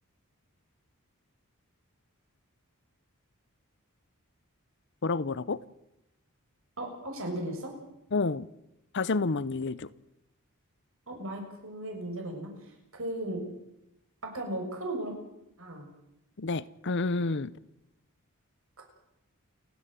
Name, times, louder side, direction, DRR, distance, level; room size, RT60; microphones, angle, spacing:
voice 1, 5.0-5.6 8.1-8.5 8.9-9.9 16.4-17.5, left 3 dB, 55° left, 0.7 m, -29 dB
voice 2, 6.8-7.7 11.1-12.5 12.9-13.4 14.2-15.1 15.6-15.9 18.8-18.9, right 1 dB, 65° right, 6.6 m, -36 dB
29.0 x 10.5 x 9.2 m
head